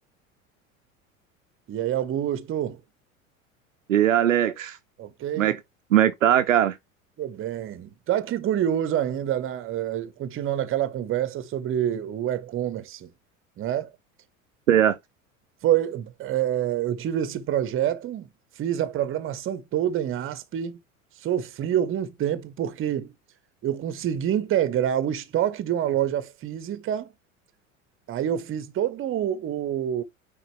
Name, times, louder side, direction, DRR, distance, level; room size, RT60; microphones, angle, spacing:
voice 1, 1.7-2.8 5.0-5.5 7.2-13.1 13.6-13.9 15.6-18.3 18.6-20.8 21.2-23.1 23.6-27.1 28.1-30.0, right 10 dB, 30° right, 1.2 m, -27 dB
voice 2, 3.9-4.8 5.4-5.6 5.9-6.8 14.7-15.0, right 11 dB, 70° right, 0.8 m, -20 dB
9.1 x 4.0 x 3.2 m
figure-of-eight pair, 75°, 40 cm